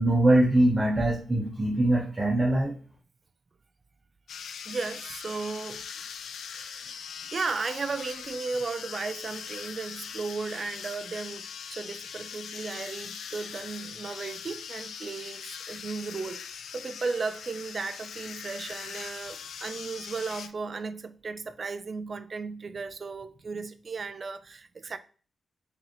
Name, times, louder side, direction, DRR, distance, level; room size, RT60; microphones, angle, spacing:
voice 1, 0.0-2.7, right 1 dB, 30° right, 1.0 m, -22 dB
sound 1, 4.3-20.5, left 7 dB, 80° left, 0.3 m, -41 dB
voice 2, 4.7-5.9 6.5-7.0 7.3-25.0, right 4 dB, 50° right, 0.4 m, -35 dB
4.7 x 2.8 x 3.0 m
cardioid pair, 70°, 0 cm